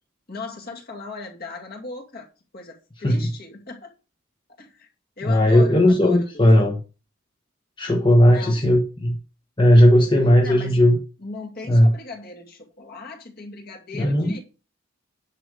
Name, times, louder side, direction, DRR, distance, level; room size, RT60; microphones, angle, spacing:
voice 1, 0.3-2.3 2.5-3.9 4.6-4.9 5.2-6.5 8.3-8.6 10.4-10.8 11.2-14.4, left 3 dB, 45° left, 1 dB, 2.4 m, -37 dB
voice 2, 5.2-6.8 7.8-9.2 9.6-11.0 11.7-11.9 13.9-14.4, equal, 25° left, 2 dB, 1.2 m, -16 dB
10.0 x 4.8 x 6.6 m, 0.33 s
head